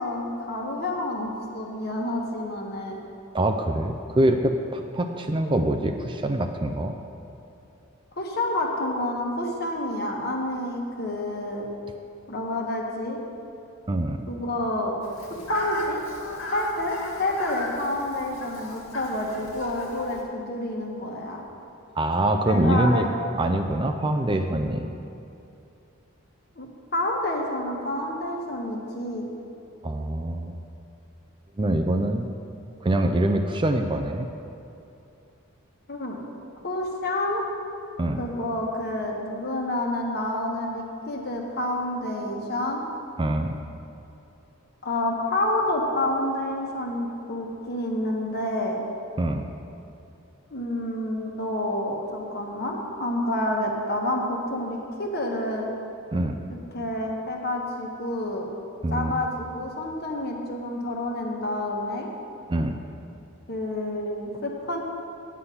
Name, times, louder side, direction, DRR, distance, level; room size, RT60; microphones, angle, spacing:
voice 1, 0.0-3.0 8.2-11.7 12.3-13.2 14.3-14.9 15.5-16.0 16.5-21.4 22.5-23.1 26.6-26.7 26.9-29.3 35.9-36.2 36.6-37.4 38.2-42.8 44.8-48.8 50.5-55.7 56.7-58.5 58.9-62.1 63.5-64.8, left 1 dB, 50° left, 0 dB, 1.4 m, -28 dB
voice 2, 3.3-6.9 13.9-14.2 22.0-23.1 23.4-24.9 29.8-30.5 31.6-32.3 32.8-34.3 38.0-38.2 43.2-43.5 49.2-49.4 56.1-56.4 58.8-59.1 62.5-62.8, right 1 dB, 25° right, 5 dB, 0.4 m, -24 dB
Fowl, 15.0-20.2, left 2 dB, 80° left, 1.8 m, -37 dB
9.7 x 8.4 x 5.6 m, 2.7 s
head